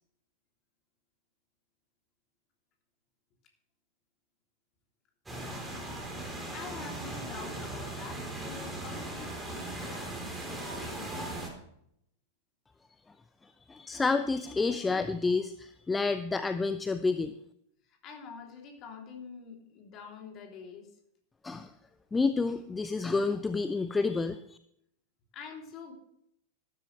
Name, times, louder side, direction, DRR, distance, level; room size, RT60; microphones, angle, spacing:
sound 1, 5.3-11.5, right 1 dB, 10° right, 3.8 m, -38 dB
voice 1, 6.5-10.2 10.5-11.1 17.8-21.0 25.3-25.9, left 5 dB, 35° left, 2 dB, 3.2 m, -46 dB
voice 2, 13.7-17.3 21.4-21.7 22.1-24.4, left 4 dB, 10° left, 11 dB, 0.6 m, -29 dB
14.5 x 12.5 x 3.3 m, 0.73 s
figure-of-eight pair, 90°, 0 cm